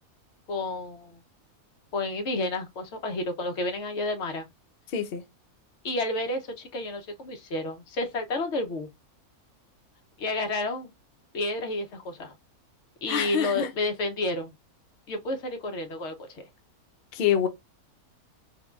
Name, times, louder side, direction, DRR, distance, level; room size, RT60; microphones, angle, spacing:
voice 1, 0.5-1.2 1.9-4.5 5.8-8.9 10.2-10.9 11.3-12.3 13.0-14.5 15.1-16.5, left 2 dB, 60° left, 0.8 m, -30 dB
voice 2, 4.9-5.2 13.1-13.7 17.1-17.5, left 8 dB, 80° left, 0.5 m, -26 dB
3.6 x 2.1 x 2.3 m
omnidirectional pair, 1.6 m